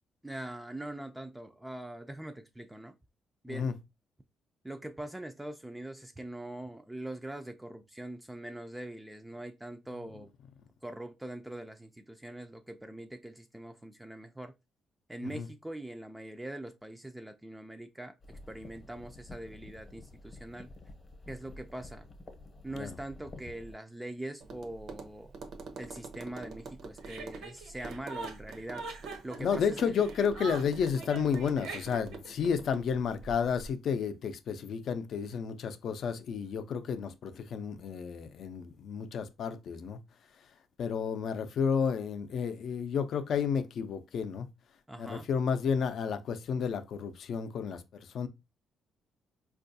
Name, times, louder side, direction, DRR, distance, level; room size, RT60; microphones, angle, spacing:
voice 1, 0.2-2.9 3.4-3.7 4.6-10.3 10.8-14.5 15.1-20.7 21.3-22.1 22.6-25.3 25.8-28.8 29.2-29.9 44.9-45.3, right 1 dB, 10° right, 0.3 m, -43 dB
sound 1, 18.2-23.8, left 2 dB, 35° left, 0.8 m, -50 dB
Tap, 24.4-33.7, right 3 dB, 65° right, 0.7 m, -46 dB
Chuckle chortle, 27.0-32.3, right 4 dB, 90° right, 1.1 m, -42 dB
voice 2, 29.4-40.0 40.8-44.5 45.0-48.3, left 6 dB, 65° left, 0.5 m, -31 dB
4.4 x 2.4 x 2.6 m
cardioid pair, 90°, 0 cm